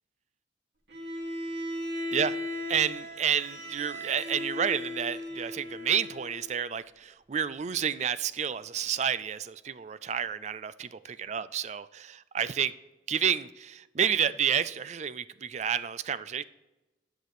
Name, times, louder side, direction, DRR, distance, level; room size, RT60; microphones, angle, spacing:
Bowed string instrument, 0.9-6.5, left 1 dB, 70° right, 2.7 m, -37 dB
voice 1, 2.7-9.5 9.8-12.7 13.1-16.4, right 8 dB, 40° right, 0.4 m, -30 dB
11.0 x 6.0 x 4.9 m
head